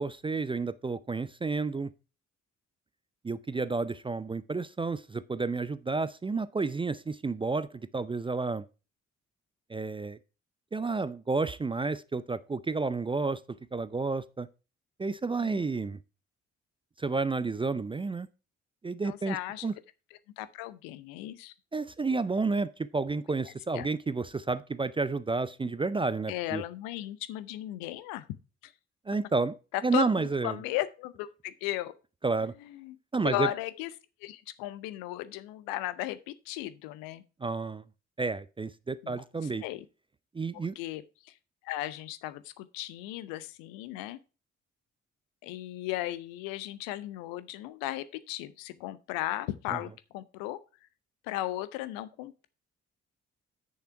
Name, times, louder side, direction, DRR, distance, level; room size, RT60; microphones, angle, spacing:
voice 1, 0.0-1.9 3.2-7.7 7.9-8.6 9.7-10.2 10.7-13.4 13.7-14.5 15.0-16.0 17.0-18.3 18.8-19.4 19.6-19.7 21.7-26.6 29.1-29.5 29.8-30.6 32.2-32.5 33.1-33.5 37.4-37.8 38.2-39.6 40.3-40.7 49.7-49.8, right 4 dB, 15° right, 0.4 m, -30 dB
voice 2, 19.0-19.7 20.4-21.5 23.4-23.9 26.3-28.3 28.6-28.7 29.7-31.9 32.6-33.0 33.2-33.9 34.2-37.2 39.0-39.9 40.7-41.4 41.6-44.2 45.4-50.6 51.2-52.5, left 15 dB, 65° left, 0.8 m, -36 dB
8.5 x 6.8 x 4.5 m
figure-of-eight pair, 40°, 37 cm